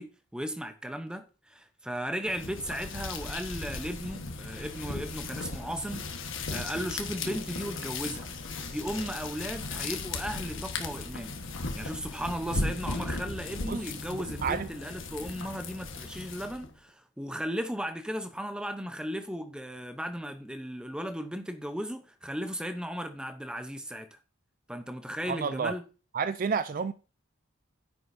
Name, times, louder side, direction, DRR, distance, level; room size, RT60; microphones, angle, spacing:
voice 1, 0.0-8.3 8.7-11.4 11.8-24.2 24.7-25.8, equal, 5° right, 0.8 m, -36 dB
sound 1, 2.2-16.7, left 3 dB, 65° left, 1.4 m, -37 dB
voice 2, 14.1-14.7 25.2-25.7 26.1-26.9, right 5 dB, 40° right, 0.3 m, -30 dB
10.0 x 8.0 x 2.7 m
head